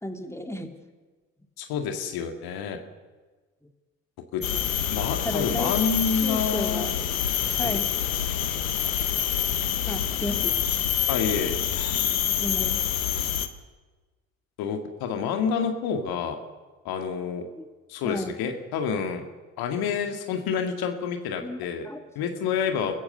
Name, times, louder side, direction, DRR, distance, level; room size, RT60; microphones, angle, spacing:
voice 1, 0.0-0.7 5.2-5.8 6.2-6.9 7.6-7.9 8.8-9.0 9.9-10.6 12.4-12.9 17.5-17.6 18.0-18.4 21.4-22.1, left 1 dB, 5° left, 5 dB, 3.2 m, -33 dB
voice 2, 1.6-2.8 4.3-4.4 4.9-6.9 7.6-7.8 11.1-11.6 14.6-16.4 16.8-17.4 17.9-19.2 19.6-21.9 22.2-22.9, left 6 dB, 65° left, 5 dB, 2.3 m, -28 dB
sound 1, 4.4-13.5, left 10 dB, 90° left, 1.2 m, -26 dB
29.5 x 15.5 x 6.9 m, 1.3 s
hypercardioid pair, 50°, 40 cm